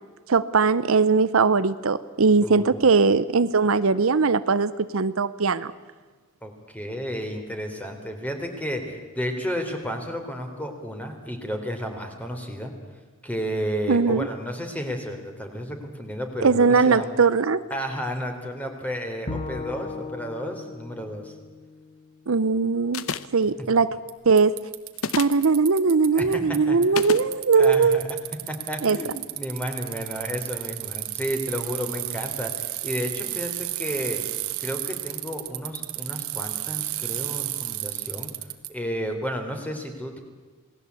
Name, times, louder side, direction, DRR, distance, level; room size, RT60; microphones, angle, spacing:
voice 1, 0.3-5.7 13.9-14.3 16.4-17.6 22.3-23.1 23.3-24.0 24.3-24.6 25.2-28.0 28.8-29.0, right 4 dB, 65° right, 14 dB, 0.7 m, -20 dB
voice 2, 2.4-2.9 6.4-12.7 13.2-17.2 17.7-21.3 23.6-23.7 26.2-26.8 27.6-28.0 28.5-34.2 34.6-38.3 38.7-40.2, equal, 5° left, 4 dB, 3.5 m, -32 dB
Bowed string instrument, 19.3-22.5, left 3 dB, 35° left, 1.5 m, -37 dB
sound 1, 22.9-23.4 24.9-25.4 26.9-27.3, left 5 dB, 70° left, 0.9 m, -29 dB
Bicycle, 23.1-23.2 24.1-24.2 24.4-26.6 26.8-38.7, right 15 dB, 80° right, 1.7 m, -32 dB
27.5 x 19.0 x 8.3 m, 1.3 s
head